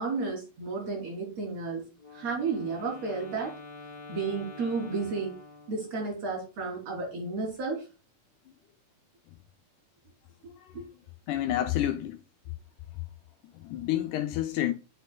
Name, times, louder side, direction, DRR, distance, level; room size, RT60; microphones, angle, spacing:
voice 1, 0.0-1.8 2.1-3.5 4.1-5.4 5.7-7.9 10.4-10.8, right 4 dB, 55° right, 4.1 m, -32 dB
Wind instrument woodwind instrument, 2.0-6.1, left 3 dB, 15° left, 2.1 m, -47 dB
voice 2, 11.3-12.2 13.5-14.7, left 12 dB, 80° left, 2.0 m, -29 dB
10.0 x 4.4 x 2.2 m
omnidirectional pair, 3.7 m